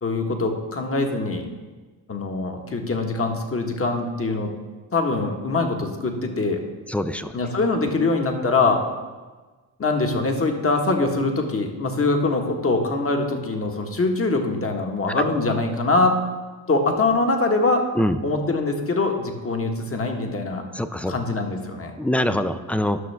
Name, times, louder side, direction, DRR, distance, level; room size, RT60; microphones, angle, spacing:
voice 1, 0.0-1.5 2.1-4.5 4.9-6.6 7.3-8.8 9.8-16.2 16.7-17.8 18.2-20.6 21.1-21.9, left 3 dB, 30° left, 3 dB, 1.5 m, -23 dB
voice 2, 6.9-7.3 17.9-18.2 20.7-21.1 22.0-23.0, left 1 dB, 5° left, 10 dB, 0.5 m, -23 dB
11.0 x 6.1 x 3.5 m, 1.3 s
supercardioid pair, 60°, 45 cm